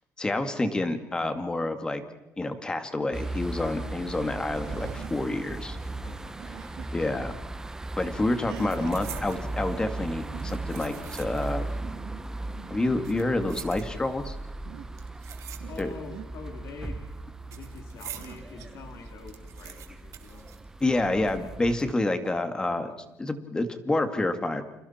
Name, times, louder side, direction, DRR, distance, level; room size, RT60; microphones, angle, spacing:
voice 1, 0.2-2.0 2.4-5.8 6.9-7.4 8.0-11.7 12.7-14.4 15.8-15.9 20.8-22.9 23.2-24.6, left 2 dB, 15° left, 8 dB, 2.1 m, -28 dB
sound 1, 3.1-21.9, right 2 dB, 10° right, 0.8 m, -38 dB
sound 2, 3.4-7.3 7.6-9.0 10.0-10.1 10.3-10.6 10.9-11.2 11.6-13.4 14.5-15.1 15.6-16.3 18.0-19.1 19.8-19.9 20.9-21.0, right 9 dB, 80° right, 2.3 m, -46 dB
voice 2, 6.0-6.6 15.7-17.1 17.5-20.6, left 4 dB, 55° left, 3 dB, 3.3 m, -45 dB
sound 3, 8.4-9.5 10.2-11.6 11.9-12.0 12.8-14.3 14.9-16.2 16.4-18.4 18.8-18.9 19.1-21.2 21.5-21.6 22.2-22.7 23.1-23.3, right 10 dB, 60° right, 2.9 m, -46 dB
29.5 x 28.0 x 4.4 m, 1.0 s
cardioid pair, 150°, 6 cm